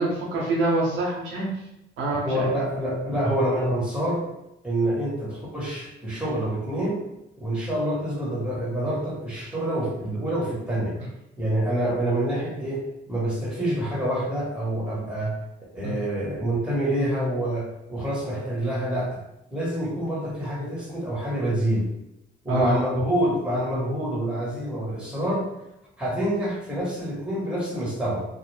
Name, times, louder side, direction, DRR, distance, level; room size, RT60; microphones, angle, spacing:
voice 1, 0.0-1.5 2.0-2.5 15.8-16.0 22.5-22.8, right 2 dB, 85° right, -4 dB, 0.8 m, -25 dB
voice 2, 2.2-4.2 4.6-7.0 7.4-11.0 11.4-15.4 15.7-19.2 19.5-21.9 22.4-25.5 26.0-28.3, right 1 dB, 5° right, -6 dB, 1.2 m, -27 dB
2.4 x 2.0 x 3.2 m, 0.86 s
cardioid pair, 90°, 20 cm